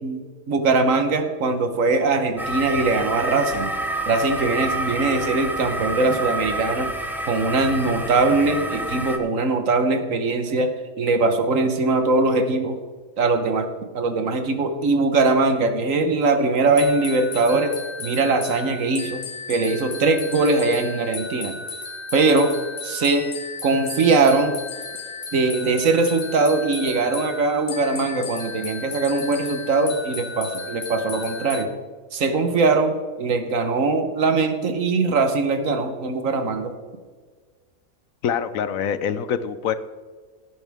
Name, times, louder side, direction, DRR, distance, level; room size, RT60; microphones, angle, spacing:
voice 1, 0.0-3.7 4.0-6.9 7.3-12.8 13.2-13.7 13.9-19.2 19.5-21.6 22.1-22.5 22.8-23.3 23.6-24.6 25.3-31.7 32.1-36.7, right 3 dB, 65° right, 8 dB, 1.5 m, -21 dB
sound 1, 2.4-9.2, right 1 dB, ahead, 1.0 m, -28 dB
sound 2, 16.8-31.7, left 4 dB, 35° left, 0.9 m, -35 dB
voice 2, 38.2-39.7, left 8 dB, 70° left, 13 dB, 1.1 m, -25 dB
17.5 x 9.4 x 3.5 m, 1.5 s
omnidirectional pair, 1.5 m